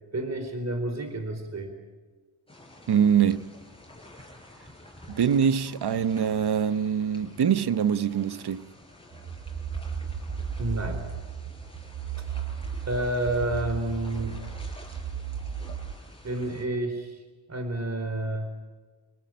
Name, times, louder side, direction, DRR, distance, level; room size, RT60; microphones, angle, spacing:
voice 1, 0.1-1.7 10.6-11.0 12.2-12.3 12.9-14.4 16.2-17.2 17.5-18.5, right 1 dB, 35° right, 4.0 m, -30 dB
sound 1, 2.5-16.6, left 1 dB, 10° left, 6.1 m, -50 dB
voice 2, 2.9-3.5 5.1-8.7, right 8 dB, 55° right, 1.1 m, -24 dB
sound 2, 9.1-15.9, right 7 dB, 70° right, 4.1 m, -35 dB
27.5 x 19.0 x 8.8 m
cardioid pair, 80°, 48 cm